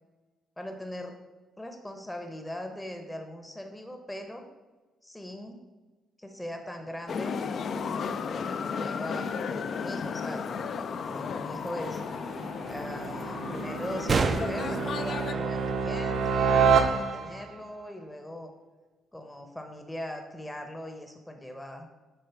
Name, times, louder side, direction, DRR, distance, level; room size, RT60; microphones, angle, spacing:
voice 1, 0.6-1.2 1.6-4.4 5.0-5.6 6.2-7.4 8.1-10.7 11.1-12.0 12.7-18.5 19.1-21.9, left 1 dB, 10° left, 5 dB, 0.7 m, -40 dB
sound 1, 7.1-15.3, left 6 dB, 55° left, 0.4 m, -34 dB
sound 2, 11.1-17.5, right 6 dB, 75° right, 0.8 m, -29 dB
sound 3, 11.8-16.8, right 4 dB, 40° right, 0.4 m, -34 dB
6.8 x 3.7 x 5.8 m, 1.3 s
cardioid pair, 95°, 0 cm